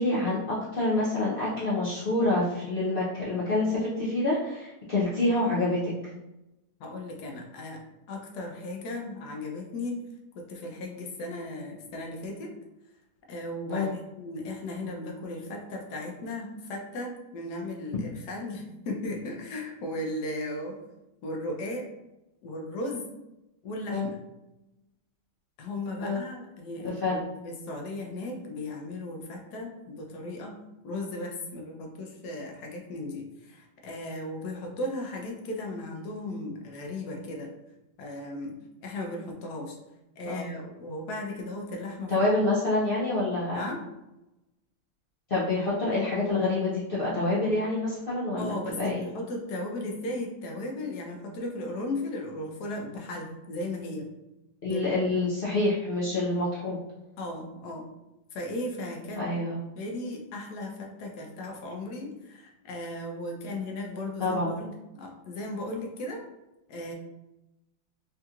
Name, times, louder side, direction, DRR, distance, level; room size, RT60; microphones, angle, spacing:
voice 1, 0.0-5.9 13.7-13.9 23.9-24.1 26.0-26.2 27.0-27.2 40.2-40.4 42.1-43.7 45.3-49.0 54.6-56.8 59.2-59.6 64.2-64.5, left 2 dB, 90° left, -8 dB, 0.4 m, -27 dB
voice 2, 6.8-7.8 8.1-10.0 10.3-12.5 13.3-20.8 21.2-21.9 22.4-23.1 23.6-24.2 25.6-30.6 30.8-37.5 38.0-39.8 40.2-42.3 43.5-43.8 48.4-54.1 54.7-54.8 57.2-57.9 58.3-59.2 59.8-66.2 66.7-66.9, left 1 dB, 75° left, 1 dB, 1.1 m, -36 dB
3.5 x 2.8 x 2.3 m, 0.95 s
omnidirectional pair, 1.8 m